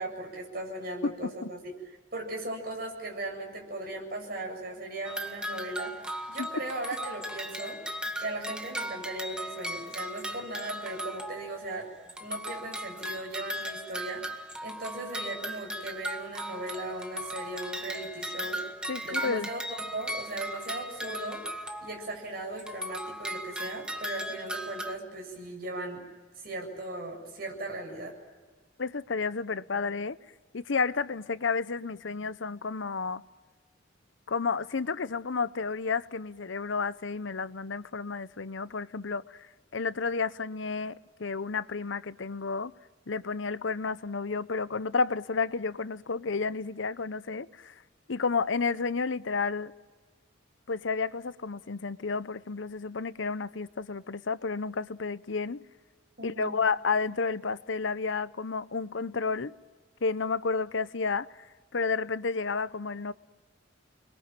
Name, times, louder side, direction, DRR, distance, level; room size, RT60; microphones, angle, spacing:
voice 1, 0.0-1.6 2.1-6.0 6.3-7.8 8.2-11.9 12.2-14.2 14.6-18.6 19.0-21.4 21.8-26.0 26.4-28.1 56.2-56.6, right 2 dB, 50° right, 7.6 m, -38 dB
voice 2, 1.0-1.5 6.4-6.5 18.9-19.5 28.8-30.2 30.5-33.2 34.3-39.5 39.7-42.7 43.1-47.7 48.1-49.7 50.7-55.6 56.2-59.5 60.0-61.3 61.7-63.1, left 4 dB, 75° left, 0.8 m, -31 dB
sound 1, 5.0-11.8 12.1-22.3 22.6-24.9, equal, 5° right, 1.3 m, -37 dB
29.5 x 22.0 x 9.0 m
head